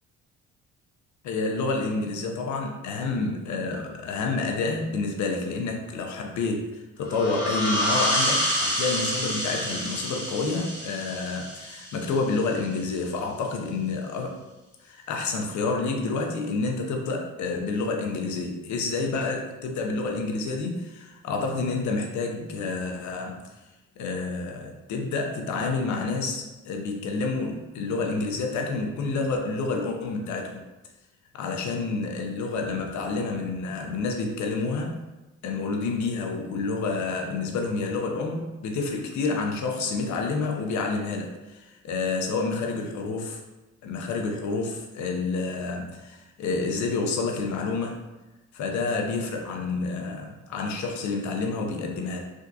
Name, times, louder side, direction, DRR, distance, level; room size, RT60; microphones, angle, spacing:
voice 1, 1.2-14.4 14.8-23.4 24.0-30.6 31.3-35.0 35.4-43.4 43.8-48.0 48.5-52.2, left 3 dB, 70° left, 2 dB, 0.6 m, -29 dB
sound 1, 7.1-12.4, equal, 15° right, 1.0 m, -28 dB
3.5 x 2.6 x 2.3 m, 1.1 s
cardioid pair, 90°, 30 cm